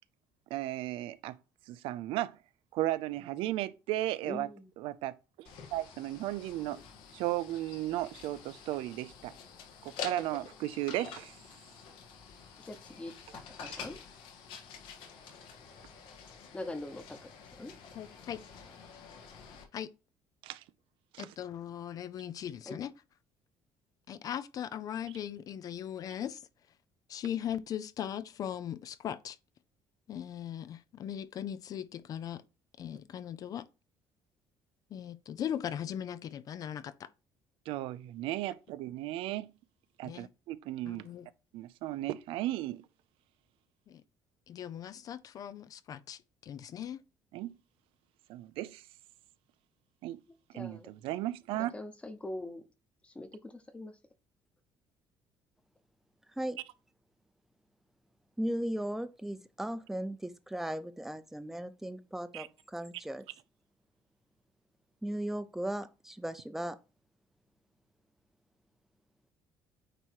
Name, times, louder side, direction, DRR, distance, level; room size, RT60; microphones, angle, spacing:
voice 1, 0.5-1.4 1.7-2.4 2.7-4.5 4.8-6.8 7.1-9.3 9.8-11.4 20.4-20.6 21.1-21.3 37.7-39.5 40.0-41.0 41.5-42.8 47.3-47.5 48.3-48.8 50.0-50.2 50.5-51.7 62.3-62.5, right 15 dB, 85° right, 0.5 m, -35 dB
voice 2, 4.2-4.7 12.7-14.0 16.5-17.2 17.6-17.7 22.7-22.8 50.5-50.9 51.7-52.6 53.0-53.9, left 1 dB, 15° left, 1.0 m, -43 dB
sound 1, 5.4-19.6, left 6 dB, 80° left, 1.6 m, -48 dB
voice 3, 18.0-18.4 19.7-19.9 21.2-22.9 24.1-26.4 27.1-29.4 30.1-32.4 32.8-33.7 34.9-37.1 40.0-40.3 40.9-41.3 43.9-44.0 44.5-47.0, left 10 dB, 45° left, 0.4 m, -39 dB
voice 4, 58.4-63.2 65.0-66.8, right 1 dB, 5° right, 0.6 m, -37 dB
9.0 x 3.1 x 4.5 m
cardioid pair, 150°, 9 cm